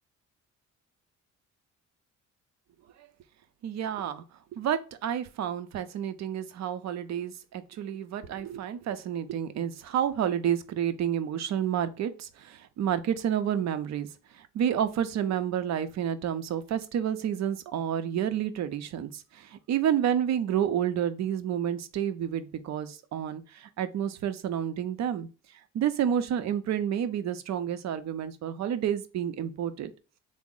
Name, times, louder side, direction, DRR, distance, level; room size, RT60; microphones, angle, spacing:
voice 1, 3.6-4.2 4.5-14.1 14.3-25.3 25.7-29.9, right 9 dB, 60° right, 0.6 m, -30 dB
3.5 x 2.0 x 3.8 m
cardioid pair, 90°, 30 cm